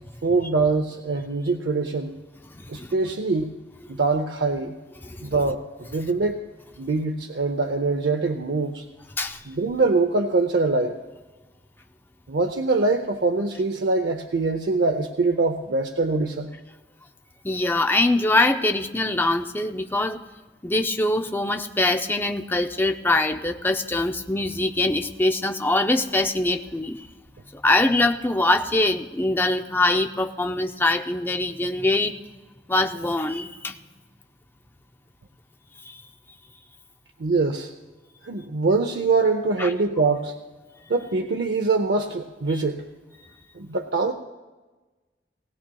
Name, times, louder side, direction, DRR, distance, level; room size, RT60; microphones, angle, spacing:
voice 1, 0.2-2.2 2.7-3.5 3.9-4.8 5.2-5.6 5.9-6.4 6.8-8.8 9.5-11.0 12.3-16.5 37.2-37.7 38.2-40.3 40.9-42.8 43.5-44.1, right 3 dB, 75° right, 4 dB, 0.6 m, -23 dB
voice 2, 2.5-3.1 5.0-5.2 9.2-9.4 17.4-20.2 20.6-27.0 27.5-32.1 32.7-33.8 35.9-36.0 39.6-39.7, left 2 dB, 10° left, 5 dB, 0.5 m, -23 dB
19.5 x 17.0 x 2.3 m, 1.2 s
head